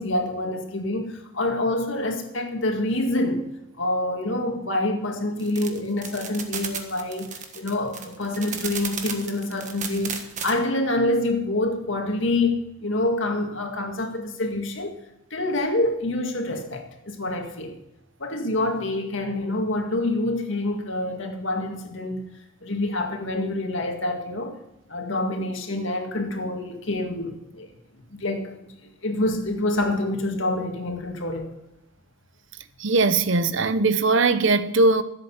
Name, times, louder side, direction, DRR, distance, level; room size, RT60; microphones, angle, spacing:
voice 1, 0.0-3.5 3.8-15.0 15.3-17.7 18.2-22.3 22.6-24.6 24.9-27.7 28.1-28.6 29.0-31.5, left 2 dB, 60° left, 2.1 m, -26 dB
sound 1, 5.4-10.5, right 7 dB, 35° right, 1.4 m, -33 dB
voice 2, 32.8-35.0, right 3 dB, 60° right, 0.8 m, -20 dB
14.5 x 8.1 x 7.3 m
head